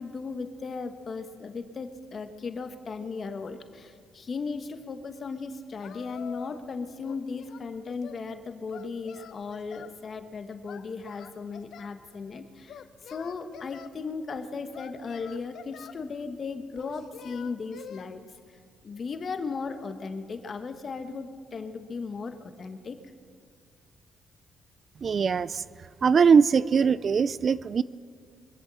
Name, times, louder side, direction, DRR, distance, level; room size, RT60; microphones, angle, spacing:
voice 1, 0.0-18.3 18.8-23.0, left 4 dB, 45° left, 8 dB, 1.1 m, -36 dB
Singing, 5.8-6.7 7.0-8.2 8.7-10.0 10.7-12.0 12.7-13.9 14.7-16.0 16.8-18.1, left 8 dB, 70° left, 0.8 m, -46 dB
voice 2, 25.0-25.6 26.0-27.8, right 6 dB, 45° right, 18 dB, 0.3 m, -21 dB
23.5 x 8.0 x 7.6 m, 2.1 s
cardioid pair, 105°, 0 cm